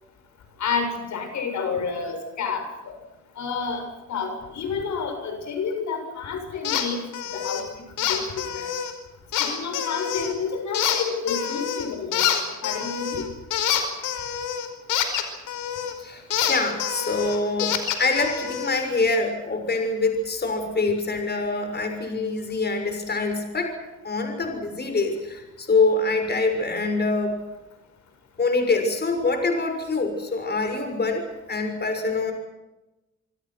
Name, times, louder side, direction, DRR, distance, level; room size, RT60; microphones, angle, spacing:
voice 1, 0.6-2.9 3.4-3.8 4.1-7.1 7.3-7.6 8.0-8.7 9.4-12.3 12.6-13.2, left 5 dB, 70° left, 6 dB, 7.4 m, -29 dB
sound 1, 6.6-6.9 7.1-7.6 8.0-8.9 9.3-10.3 10.7-11.9 12.1-15.9 16.3-18.7, left 9 dB, 90° left, 5.0 m, -26 dB
voice 2, 16.0-23.7 24.0-27.4 28.4-32.3, left 3 dB, 35° left, 5 dB, 6.3 m, -25 dB
26.5 x 25.5 x 6.2 m, 1.0 s
cardioid pair, 90°, 30 cm